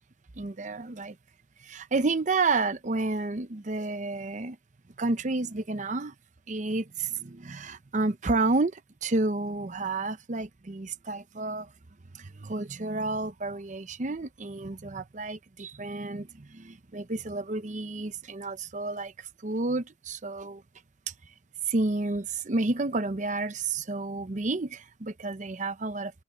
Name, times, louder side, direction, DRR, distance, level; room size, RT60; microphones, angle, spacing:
voice 1, 0.4-1.2 1.6-4.6 5.0-6.1 6.5-11.7 12.1-20.6 21.7-26.1, right 3 dB, 45° right, 0.8 m, -30 dB
open air
head